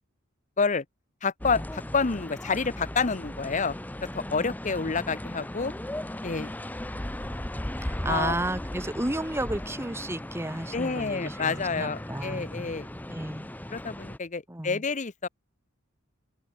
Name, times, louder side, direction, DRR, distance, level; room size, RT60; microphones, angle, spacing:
voice 1, 1.2-3.7 4.1-5.7 6.2-6.5 8.1-8.3 10.7-12.9 13.7-15.3, left 4 dB, 40° left, 0.8 m, -28 dB
sound 1, 1.4-14.2, left 1 dB, 10° left, 0.7 m, -37 dB
voice 2, 7.8-12.5 13.1-13.5 14.5-14.8, right 1 dB, 15° right, 1.5 m, -32 dB
open air
head